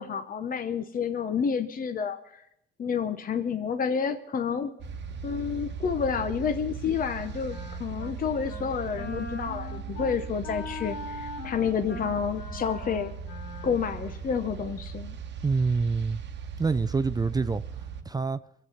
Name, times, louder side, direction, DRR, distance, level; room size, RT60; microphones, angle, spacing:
voice 1, 0.0-2.4 2.8-4.8 5.2-13.1 13.6-15.2, left 6 dB, 45° left, 0.9 m, -29 dB
sound 1, 4.8-18.0, right 6 dB, 60° right, 1.1 m, -39 dB
Wind instrument woodwind instrument, 7.0-8.2 8.5-8.7 8.9-14.2, left 3 dB, 90° left, 4.4 m, -41 dB
voice 2, 15.4-16.2 16.6-17.6 18.0-18.4, right 4 dB, 20° right, 0.4 m, -26 dB
23.0 x 8.1 x 5.7 m
cardioid pair, 90°, 20 cm